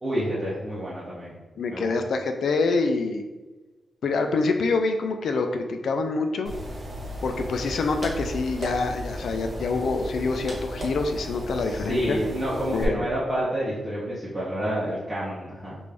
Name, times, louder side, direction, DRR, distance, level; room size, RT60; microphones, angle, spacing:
voice 1, 0.0-1.3 1.7-1.9 11.6-15.8, equal, 10° right, -9 dB, 0.8 m, -29 dB
voice 2, 1.6-3.2 4.0-6.6 7.2-12.2 12.7-13.1, left 3 dB, 70° left, 5 dB, 0.4 m, -26 dB
sound 1, 6.4-12.8, equal, 45° right, 1.1 m, -35 dB
5.1 x 2.6 x 3.3 m, 1.2 s
wide cardioid pair, 155°, 0 cm